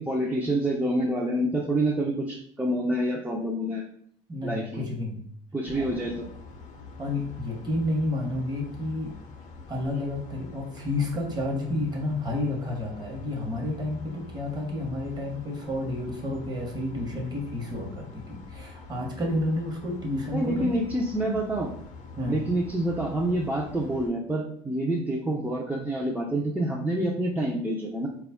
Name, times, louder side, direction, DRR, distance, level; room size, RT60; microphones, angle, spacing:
voice 1, 0.0-3.8 4.4-4.8 5.5-6.3 20.3-21.7 22.3-28.1, right 1 dB, 10° right, -3 dB, 0.5 m, -27 dB
voice 2, 4.3-5.2 5.8-5.9 7.0-9.1 9.7-20.7 22.2-22.4, left 1 dB, 25° right, 0 dB, 1.0 m, -30 dB
sound 1, 5.7-24.1, left 3 dB, 55° left, 0.6 m, -45 dB
2.3 x 2.1 x 3.5 m, 0.63 s
hypercardioid pair, 65°, 15 cm